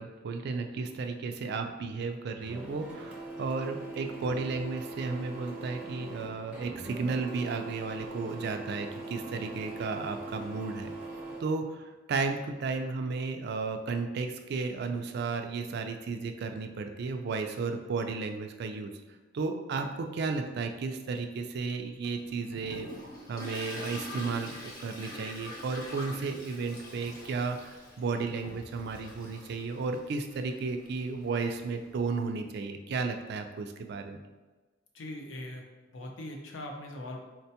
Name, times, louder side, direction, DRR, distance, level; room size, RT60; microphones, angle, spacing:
voice 1, 0.0-10.9 11.4-18.9 19.3-22.9 23.3-34.2, right 4 dB, 60° right, 5 dB, 0.3 m, -33 dB
Printer, 2.4-11.4, right 2 dB, 5° right, 0.6 m, -41 dB
Toilet flush, 22.0-32.3, left 1 dB, 50° left, 0.9 m, -45 dB
voice 2, 34.9-35.6 35.9-37.2, left 1 dB, 75° left, 2 dB, 0.6 m, -40 dB
4.2 x 2.2 x 2.8 m, 1.2 s
head